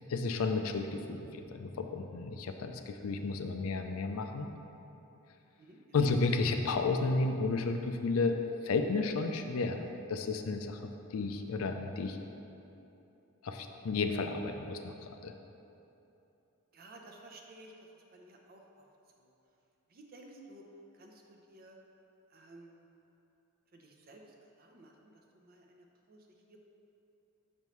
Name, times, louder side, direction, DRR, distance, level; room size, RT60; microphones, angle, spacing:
voice 1, 0.1-4.5 5.9-8.3 8.6-9.8 10.1-10.8 11.1-12.2 13.4-15.3, left 3 dB, 80° left, 6 dB, 0.4 m, -32 dB
voice 2, 16.7-17.7 18.1-18.9 19.2-19.3 19.9-20.7 20.9-21.8 22.3-22.7 23.7-24.2 24.6-25.0 25.3-26.6, right 2 dB, 45° right, 1 dB, 0.6 m, -55 dB
6.6 x 5.3 x 3.1 m, 2.9 s
head